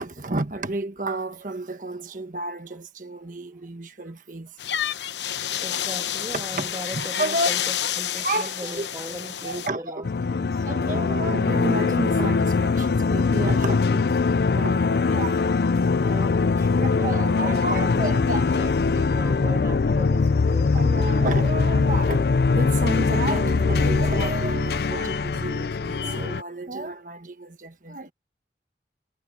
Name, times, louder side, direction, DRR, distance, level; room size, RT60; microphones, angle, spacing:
voice 1, 0.0-4.6 6.3-7.5 8.2-8.9 9.4-10.1 10.7-14.1 14.5-15.5 16.8-18.4 20.7-28.1, right 2 dB, 45° right, 1.5 m, -31 dB
sound 1, 4.6-9.7, left 10 dB, 85° left, 1.0 m, -29 dB
voice 2, 5.6-10.7 15.8-20.8 26.0-26.3 26.7-26.8, right 1 dB, 20° right, 1.6 m, -38 dB
sound 2, 10.0-26.4, left 4 dB, 65° left, 0.4 m, -22 dB
head